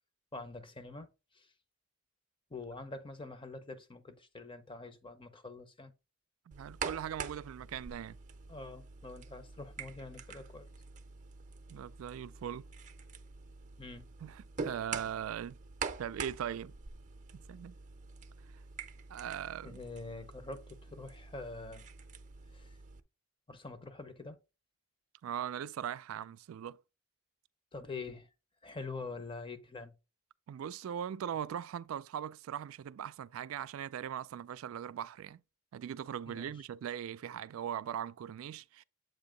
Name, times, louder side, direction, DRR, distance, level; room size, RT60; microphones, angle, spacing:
voice 1, 0.3-1.1 1.3-1.5 2.5-5.9 8.5-10.7 13.8-14.1 19.6-21.9 22.5-22.8 23.5-24.4 27.7-28.3 28.6-29.9 36.3-36.5, left 3 dB, 25° left, 0.8 m, -45 dB
sound 1, 6.5-23.0, right 5 dB, 40° right, 0.6 m, -46 dB
voice 2, 6.5-8.2 11.7-12.7 14.2-15.6 16.0-16.7 17.3-17.7 19.1-19.8 25.2-26.8 30.5-35.4 35.7-38.8, right 9 dB, 85° right, 0.3 m, -40 dB
7.7 x 2.8 x 5.1 m
head